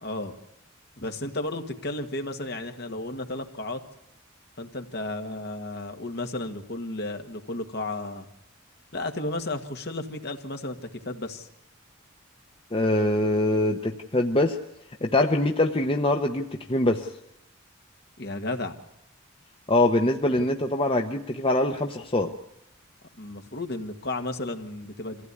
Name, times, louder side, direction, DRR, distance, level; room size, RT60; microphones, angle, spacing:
voice 1, 0.0-0.3 1.0-3.8 4.6-8.3 8.9-10.8 11.0-11.5 18.2-18.8 23.2-25.3, left 2 dB, 50° left, 5 dB, 1.8 m, -33 dB
voice 2, 12.7-14.6 15.0-17.1 19.7-22.3, left 2 dB, 25° left, 4 dB, 0.9 m, -23 dB
24.5 x 16.0 x 9.8 m, 0.81 s
head